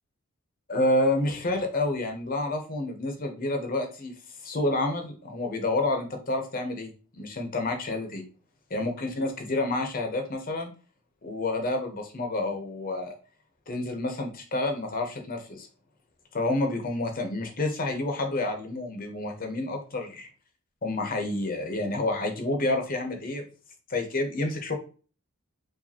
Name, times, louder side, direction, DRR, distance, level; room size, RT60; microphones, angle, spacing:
voice 1, 0.7-4.1 4.4-8.2 8.7-10.7 11.2-13.1 13.7-15.7 16.3-20.3 20.8-23.4 23.9-24.7, left 2 dB, 40° left, 4 dB, 0.8 m, -29 dB
4.7 x 2.6 x 2.8 m, 0.37 s
head